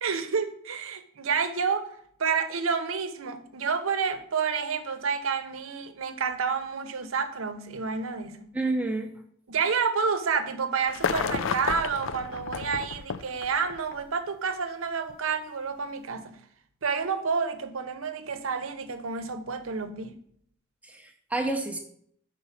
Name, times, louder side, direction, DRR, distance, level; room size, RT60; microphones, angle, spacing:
voice 1, 0.0-1.9 2.2-8.5 9.5-16.4 16.8-20.1, right 5 dB, 85° right, 9 dB, 0.7 m, -29 dB
voice 2, 8.5-9.1 20.8-21.8, right 2 dB, 5° right, 2 dB, 0.5 m, -29 dB
sound 1, 10.9-14.0 15.1-15.2, left 6 dB, 70° left, 0.4 m, -31 dB
5.9 x 4.1 x 5.7 m, 0.65 s
head